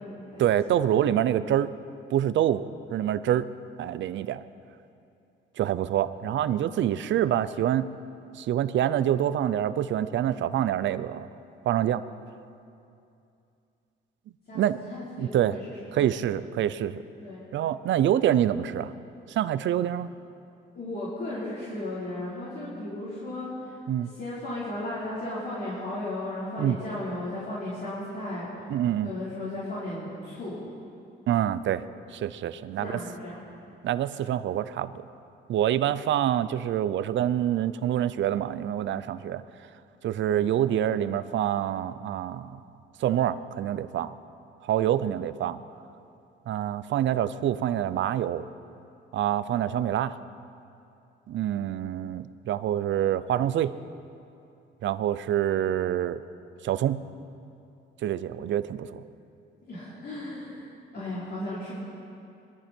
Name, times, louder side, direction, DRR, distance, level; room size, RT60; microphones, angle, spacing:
voice 1, 0.4-1.7 2.1-3.4 3.8-4.4 5.6-7.9 8.3-11.3 11.7-12.0 14.5-14.8 15.2-15.6 15.9-17.0 17.5-18.9 19.3-20.1 23.9-24.1 26.6-26.8 28.7-29.1 31.3-31.8 32.1-32.9 33.8-35.0 35.5-39.4 40.0-42.6 43.0-44.1 44.6-45.6 46.5-48.4 49.1-50.2 51.3-53.7 54.8-56.2 56.6-57.0 58.0-59.0, right 11 dB, 70° right, 14 dB, 0.6 m, -26 dB
voice 2, 14.9-16.1 17.2-17.4 20.7-28.5 29.0-30.6 32.8-33.5 44.9-45.2 51.7-51.8 59.7-61.7, left 1 dB, 55° left, -10 dB, 4.4 m, -35 dB
21.0 x 14.5 x 4.5 m, 2.6 s
cardioid pair, 90°, 20 cm